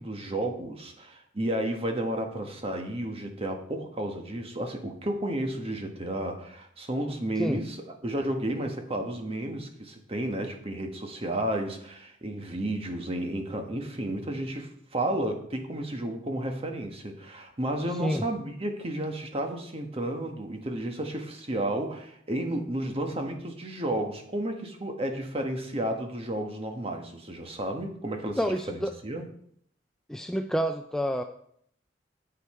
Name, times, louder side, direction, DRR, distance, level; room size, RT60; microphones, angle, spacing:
voice 1, 0.0-7.8 8.0-28.4 28.7-29.3, right 1 dB, 30° right, 4 dB, 1.4 m, -32 dB
voice 2, 28.4-28.9 30.1-31.2, equal, 5° left, 5 dB, 0.4 m, -28 dB
8.4 x 8.4 x 4.3 m, 0.66 s
head